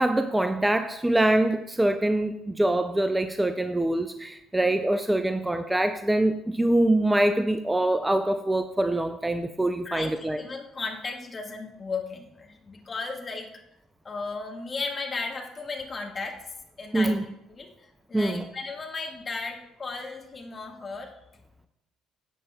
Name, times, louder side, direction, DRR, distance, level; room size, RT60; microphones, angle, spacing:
voice 1, 0.0-10.4 16.9-17.2 18.1-18.4, right 1 dB, 10° right, 9 dB, 0.4 m, -24 dB
voice 2, 9.8-13.5 14.0-16.5 16.8-17.2 17.5-21.2, left 4 dB, 30° left, 2 dB, 1.5 m, -35 dB
11.5 x 7.6 x 2.2 m, 0.83 s
figure-of-eight pair, 50°, 0 cm